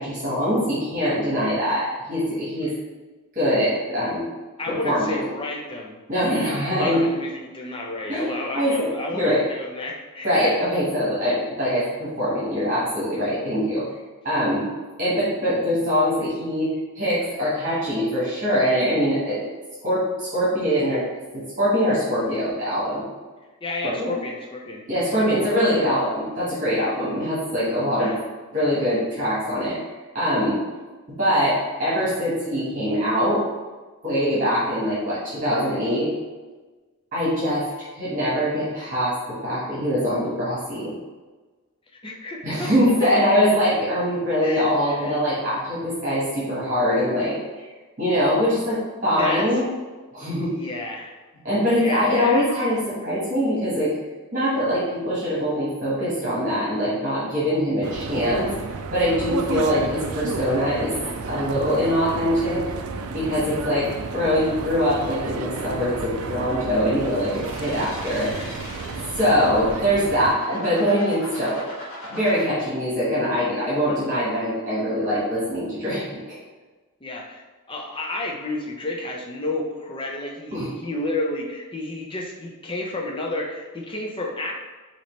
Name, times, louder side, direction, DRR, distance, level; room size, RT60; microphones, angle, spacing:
voice 1, 0.0-2.7 3.3-4.2 4.8-5.2 6.1-7.0 8.1-8.2 8.5-8.9 9.1-9.4 10.2-13.8 14.2-14.6 15.0-19.5 19.8-21.0 21.3-23.0 23.8-24.1 24.9-28.1 28.5-29.8 30.1-30.6 31.2-33.4 34.0-36.1 37.1-37.6 37.9-39.2 39.4-40.9 42.4-47.6 48.0-49.6 50.1-50.5 51.4-53.9 54.3-58.5 58.9-60.9 61.3-62.6 63.1-63.9 64.1-68.3 69.1-71.7 72.1-76.2 80.5-80.7, equal, 35° right, -9 dB, 1.5 m, -23 dB
voice 2, 4.6-6.0 6.3-10.5 23.6-24.8 25.1-25.3 28.0-28.2 42.0-42.7 43.1-43.2 44.4-45.2 49.2-49.7 50.5-51.2 51.7-52.5 77.0-84.6, left 2 dB, 25° left, 0 dB, 0.6 m, -31 dB
sound 1, 57.8-70.4, right 4 dB, 85° right, 0.4 m, -32 dB
sound 2, 66.9-69.4 69.9-72.4, left 1 dB, 60° left, 1.4 m, -40 dB
5.5 x 2.9 x 3.2 m, 1.3 s
head